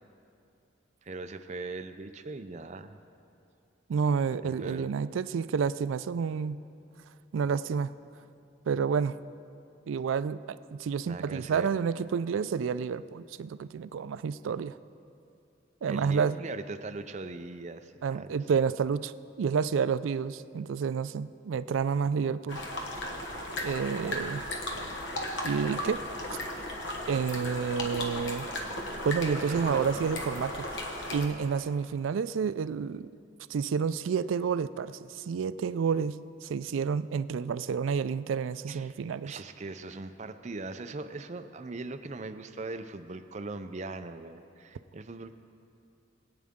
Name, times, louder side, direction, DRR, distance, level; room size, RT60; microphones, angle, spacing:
voice 1, 1.0-3.0 4.4-4.9 11.1-11.7 15.9-18.3 29.3-30.1 38.7-39.0 39.2-45.3, right 3 dB, 35° right, 8 dB, 0.5 m, -40 dB
voice 2, 3.9-6.6 7.3-7.9 8.7-9.2 9.9-14.8 15.8-16.4 18.0-19.1 19.4-22.6 23.6-24.5 25.4-26.0 27.1-28.5 29.0-30.7 31.1-33.1 33.5-39.3, right 6 dB, 90° right, 15 dB, 0.4 m, -29 dB
sound 1, 22.5-31.3, left 1 dB, 70° left, 1.3 m, -36 dB
22.0 x 8.7 x 3.6 m, 2.7 s
head